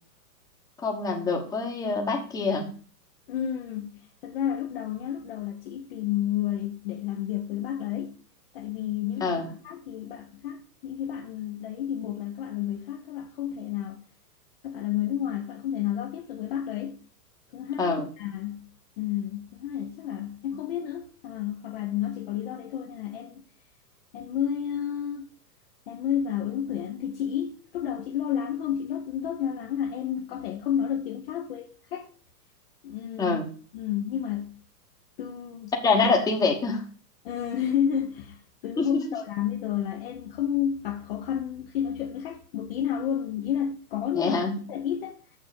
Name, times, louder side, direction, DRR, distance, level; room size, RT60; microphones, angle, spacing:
voice 1, 0.8-2.7 9.2-9.5 17.8-18.1 33.2-33.5 35.8-36.8 38.8-38.9 44.1-44.6, left 4 dB, 5° left, 1.0 m, -25 dB
voice 2, 3.3-8.2 8.5-14.0 14.6-17.0 17.5-18.7 19.0-23.4 24.1-25.3 25.9-32.1 32.8-33.4 33.7-34.6 35.2-35.7 37.2-44.4 44.7-45.2, left 9 dB, 35° left, 0.8 m, -31 dB
6.7 x 6.1 x 7.1 m
hypercardioid pair, 145°, 50 cm